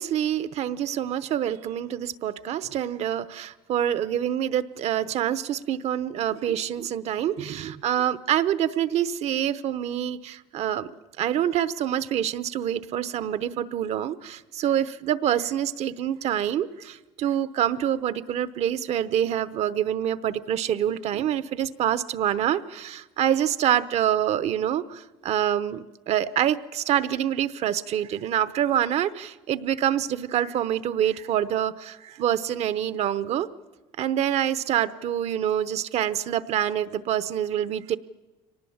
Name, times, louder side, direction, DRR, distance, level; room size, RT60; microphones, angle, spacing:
voice 1, 0.0-10.9 11.2-33.5 34.0-38.0, right 10 dB, 55° right, 14 dB, 0.9 m, -26 dB
24.0 x 19.0 x 7.2 m, 1.1 s
supercardioid pair, 105°, 13 cm